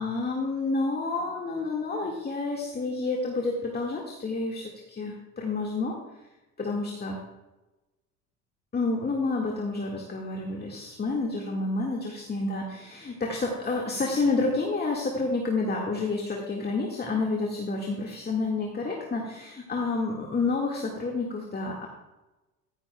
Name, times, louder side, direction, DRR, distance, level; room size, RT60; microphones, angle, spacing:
voice 1, 0.0-6.0 6.6-7.2 8.7-21.9, left 3 dB, 20° left, -1 dB, 1.8 m, -29 dB
14.5 x 9.7 x 2.2 m, 1.0 s
hypercardioid pair, 70°, 43 cm